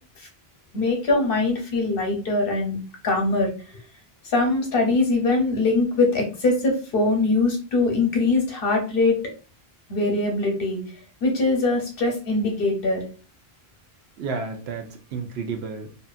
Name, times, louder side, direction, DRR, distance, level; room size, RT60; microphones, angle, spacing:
voice 1, 0.7-2.8 3.0-3.5 4.2-9.2 9.9-10.8 11.2-13.0, left 3 dB, 65° left, 2 dB, 1.0 m, -22 dB
voice 2, 14.2-16.0, right 4 dB, 80° right, 4 dB, 0.8 m, -31 dB
2.7 x 2.4 x 2.4 m, 0.35 s
omnidirectional pair, 1.1 m